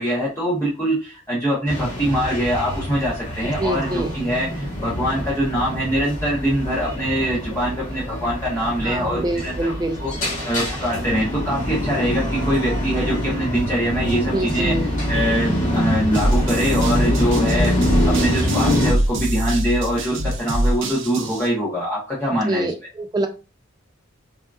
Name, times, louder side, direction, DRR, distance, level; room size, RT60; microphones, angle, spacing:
voice 1, 0.0-9.7 10.0-10.1 10.5-14.7 15.1-22.7, equal, 10° left, -7 dB, 0.7 m, -23 dB
sound 1, 1.7-18.9, equal, 40° left, 1.0 m, -24 dB
voice 2, 3.4-4.1 8.8-10.0 14.1-14.9 22.5-23.3, right 1 dB, 20° right, 5 dB, 0.3 m, -25 dB
sound 2, 16.1-21.5, right 1 dB, 65° right, 0.6 m, -24 dB
3.6 x 2.3 x 2.3 m, 0.31 s
head